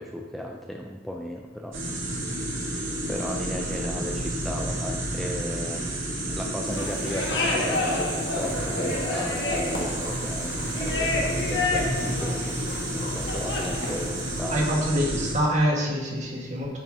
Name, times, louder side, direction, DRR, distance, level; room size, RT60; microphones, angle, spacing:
voice 1, 0.0-1.8 2.1-2.2 3.1-6.0 6.3-12.6 12.9-14.7, equal, ahead, 0 dB, 0.4 m, -35 dB
sound 1, 1.7-15.3, right 1 dB, 80° right, 2.0 m, -30 dB
sound 2, 6.7-14.8, left 2 dB, 60° left, 1.2 m, -30 dB
voice 2, 14.5-16.8, equal, 40° right, -2 dB, 1.6 m, -25 dB
8.9 x 5.6 x 3.6 m, 1.3 s
head